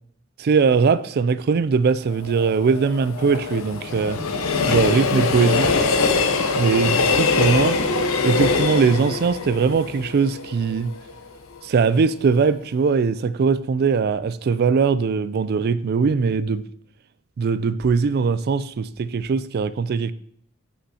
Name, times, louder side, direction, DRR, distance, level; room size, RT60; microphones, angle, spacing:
voice 1, 0.4-4.2 4.7-5.7 6.5-7.8 8.2-10.9 11.6-16.6 17.4-20.1, right 5 dB, 50° right, 16 dB, 0.4 m, -20 dB
Train, 2.1-11.2 11.6-11.7, left 4 dB, 90° left, 0.7 m, -23 dB
11.5 x 5.7 x 2.8 m, 0.66 s
head